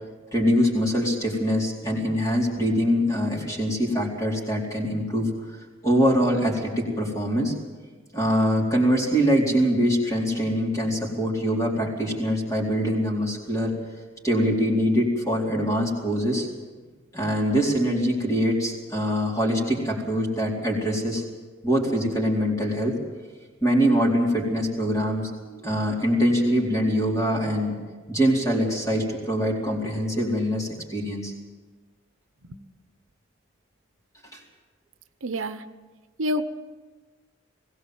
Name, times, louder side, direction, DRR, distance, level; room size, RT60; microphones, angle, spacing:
voice 1, 0.3-5.3 5.8-7.5 8.1-13.7 14.2-16.5 17.1-21.2 21.6-23.0 23.6-27.8 28.1-31.3 34.3-34.4, equal, 15° left, -2 dB, 4.2 m, -23 dB
voice 2, 35.2-35.6 36.2-36.4, equal, 85° right, 10 dB, 0.9 m, -27 dB
21.0 x 17.0 x 7.8 m, 1.3 s
head